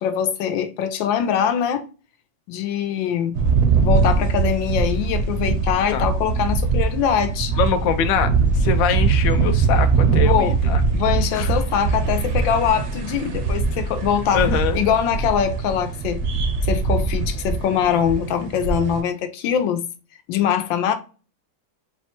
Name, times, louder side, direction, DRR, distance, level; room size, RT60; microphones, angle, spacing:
voice 1, 0.0-1.8 2.5-3.4 3.8-7.5 10.2-10.5 10.9-14.4 14.7-16.2 16.6-19.8 20.3-20.9, left 8 dB, 90° left, 1.4 m, -22 dB
sound 1, 3.3-19.0, right 5 dB, 60° right, 0.7 m, -22 dB
voice 2, 7.5-10.8 11.3-11.5 14.3-14.8, left 7 dB, 70° left, 0.8 m, -23 dB
4.2 x 2.2 x 4.3 m
omnidirectional pair, 2.0 m